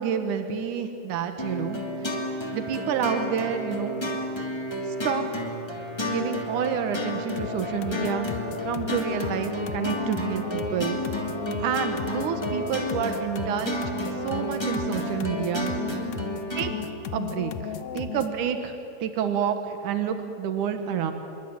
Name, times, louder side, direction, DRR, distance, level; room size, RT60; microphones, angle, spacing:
voice 1, 0.0-1.8 2.5-4.0 5.0-5.3 6.0-8.3 8.6-11.0 11.6-15.7 16.6-16.7 17.1-17.5 17.9-18.7 19.0-21.1, right 8 dB, 85° right, 7 dB, 2.9 m, -28 dB
sound 1, 1.4-16.8, left 1 dB, 10° left, 2.5 m, -31 dB
sound 2, 7.4-18.4, left 8 dB, 70° left, 2.2 m, -36 dB
26.5 x 23.0 x 9.1 m, 2.9 s
omnidirectional pair, 3.5 m